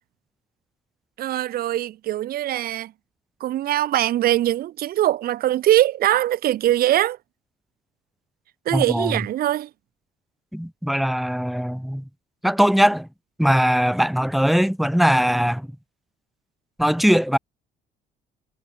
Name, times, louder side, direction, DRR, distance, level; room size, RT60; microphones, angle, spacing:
voice 1, 1.2-2.9 3.4-7.2 8.6-9.7, right 13 dB, 60° right, 1.0 m, -22 dB
voice 2, 8.7-9.1 10.5-12.0 12.4-13.1 13.4-15.7 16.8-17.4, equal, ahead, 2.0 m, -20 dB
cardioid pair, 110°, 17 cm